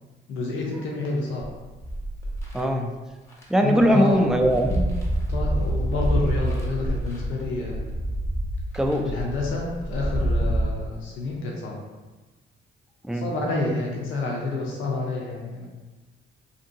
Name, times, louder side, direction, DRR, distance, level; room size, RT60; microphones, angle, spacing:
voice 1, 0.3-1.5 3.6-4.3 5.3-7.9 9.1-11.8 13.1-15.7, left 3 dB, 85° left, -2 dB, 0.5 m, -29 dB
sound 1, 1.4-2.6 3.3-3.4 3.8-10.6, right 1 dB, 15° left, 0.8 m, -27 dB
voice 2, 2.5-2.9 3.5-4.9 8.7-9.1 13.0-13.3, equal, 5° right, 2 dB, 0.3 m, -21 dB
2.7 x 2.6 x 2.6 m, 1.2 s
cardioid pair, 90°, 20 cm